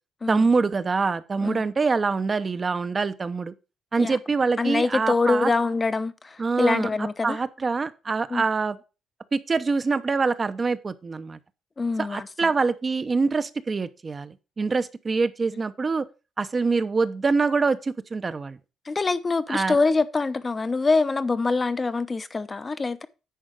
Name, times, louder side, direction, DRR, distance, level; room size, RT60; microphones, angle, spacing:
voice 1, 0.3-3.5 3.9-5.5 6.4-8.8 9.3-11.4 12.0-16.1 16.4-18.6 19.5-19.8, right 4 dB, 35° right, 0.8 m, -25 dB
voice 2, 4.6-7.4 8.3-8.4 11.8-12.5 18.9-23.1, left 3 dB, 30° left, 0.8 m, -25 dB
10.5 x 4.3 x 6.5 m
cardioid pair, 90°, 0 cm